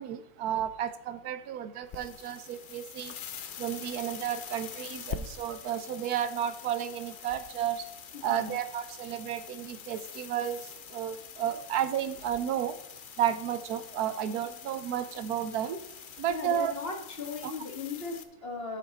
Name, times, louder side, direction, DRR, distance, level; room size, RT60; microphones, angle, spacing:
voice 1, 0.0-12.8 13.2-16.7 17.4-17.5, right 10 dB, 85° right, 12 dB, 1.2 m, -32 dB
sound 1, 1.8-18.2, left 7 dB, 70° left, 0.5 m, -45 dB
voice 2, 16.3-18.8, left 4 dB, 40° left, 3 dB, 1.6 m, -37 dB
11.0 x 6.1 x 4.0 m, 0.83 s
omnidirectional pair, 1.6 m